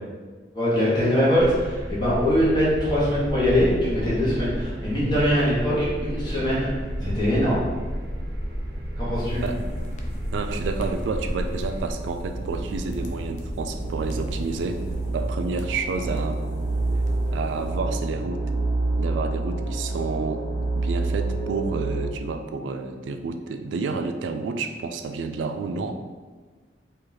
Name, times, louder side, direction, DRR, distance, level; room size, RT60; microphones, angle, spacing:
voice 1, 0.5-6.7 7.0-7.7 9.0-9.4, equal, 25° left, -9 dB, 1.2 m, -22 dB
sound 1, 1.3-11.9, equal, 55° right, 0.7 m, -32 dB
sound 2, 2.7-22.1, right 2 dB, 40° right, 1.0 m, -30 dB
sound 3, 9.1-17.8, left 1 dB, 40° left, 0.4 m, -38 dB
voice 2, 10.3-14.8 15.1-16.6 17.3-18.4 19.0-26.0, right 4 dB, 85° right, 7 dB, 0.3 m, -30 dB
3.0 x 2.8 x 3.9 m, 1.4 s
head